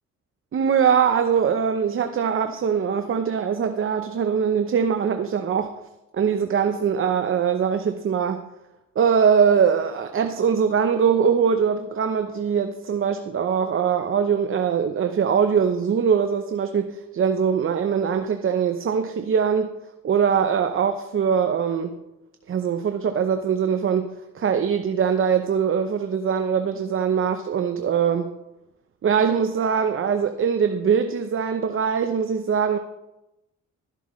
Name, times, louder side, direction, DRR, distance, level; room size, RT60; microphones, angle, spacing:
voice 1, 0.5-5.7 6.1-8.4 9.0-19.7 20.0-22.0 22.5-24.1 24.3-28.3 29.0-32.8, right 7 dB, 45° right, 8 dB, 0.8 m, -22 dB
13.0 x 11.5 x 3.2 m, 0.95 s
cardioid pair, 90°, 30 cm